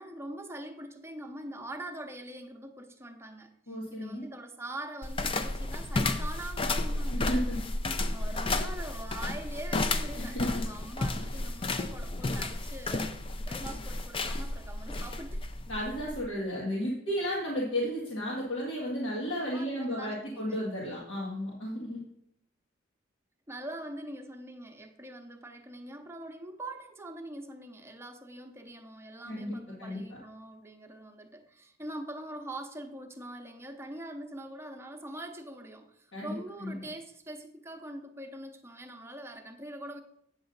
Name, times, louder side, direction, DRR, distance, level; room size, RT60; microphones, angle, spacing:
voice 1, 0.0-3.5 3.9-7.3 8.1-13.1 13.5-15.4 19.4-20.6 23.5-40.0, right 1 dB, 15° right, 5 dB, 0.7 m, -43 dB
voice 2, 3.7-4.3 7.1-7.6 10.1-10.6 15.7-22.0 29.3-30.2 36.1-36.4 36.6-36.7, equal, 85° left, -5 dB, 1.9 m, -33 dB
sound 1, 5.0-16.3, left 2 dB, 30° left, 0.5 m, -32 dB
8.7 x 6.9 x 3.9 m, 0.72 s
head